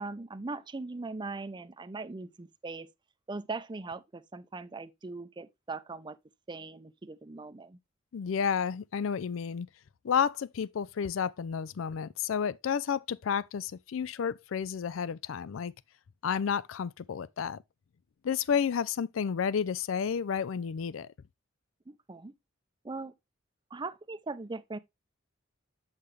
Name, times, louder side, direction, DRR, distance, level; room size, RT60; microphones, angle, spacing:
voice 1, 0.0-2.9 3.3-6.2 6.5-7.8 21.9-22.3 22.8-23.1 23.7-24.8, right 3 dB, 25° right, 0.5 m, -40 dB
voice 2, 8.1-9.7 10.0-15.7 16.2-17.6 18.2-21.1, left 7 dB, 80° left, 0.4 m, -31 dB
8.0 x 5.7 x 3.2 m
head